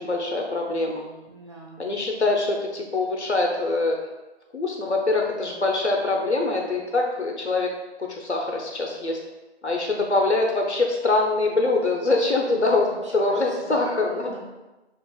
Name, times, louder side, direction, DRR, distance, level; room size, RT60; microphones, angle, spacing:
voice 1, 0.0-1.2 1.8-4.0 4.5-7.7 8.0-9.2 9.6-12.9 13.1-14.3, left 2 dB, 90° left, 1 dB, 0.7 m, -24 dB
voice 2, 1.3-1.8 12.5-14.4, equal, 25° right, -3 dB, 0.5 m, -43 dB
6.4 x 2.4 x 2.3 m, 1.1 s
figure-of-eight pair, 145°, 33 cm